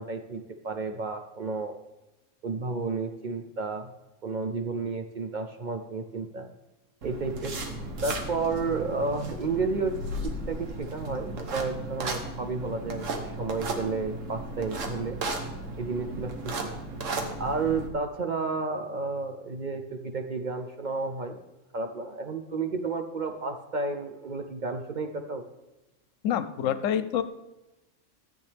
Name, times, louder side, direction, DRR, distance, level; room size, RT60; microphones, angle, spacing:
voice 1, 0.0-1.8 2.4-3.9 4.2-6.5 7.0-7.6 8.0-10.0 10.2-15.2 15.8-16.7 17.4-21.4 21.7-25.4, right 4 dB, 50° right, 5 dB, 0.6 m, -32 dB
sound 1, 7.0-17.9, right 2 dB, 75° right, 1.4 m, -35 dB
voice 2, 26.2-27.2, left 9 dB, 85° left, 13 dB, 1.0 m, -27 dB
14.0 x 8.2 x 3.4 m, 1.0 s
omnidirectional pair, 1.3 m